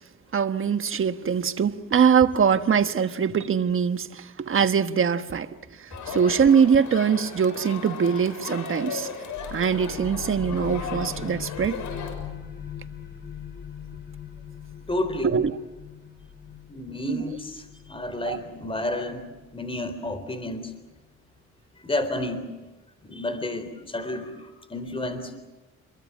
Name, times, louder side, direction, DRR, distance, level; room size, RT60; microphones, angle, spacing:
voice 1, 0.3-9.1 9.5-11.8 15.2-15.5 17.1-17.2 18.2-18.4, right 7 dB, 45° right, 1.4 m, -23 dB
Crowd, 5.9-12.1, left 5 dB, 85° left, 6.9 m, -36 dB
sound 1, 9.4-20.7, left 8 dB, 35° left, 4.4 m, -41 dB
voice 2, 14.9-15.4 16.7-19.3 19.5-20.7 21.8-22.5 23.0-25.3, left 1 dB, 20° left, 3.9 m, -31 dB
29.0 x 23.0 x 7.4 m
cardioid pair, 90°, 30 cm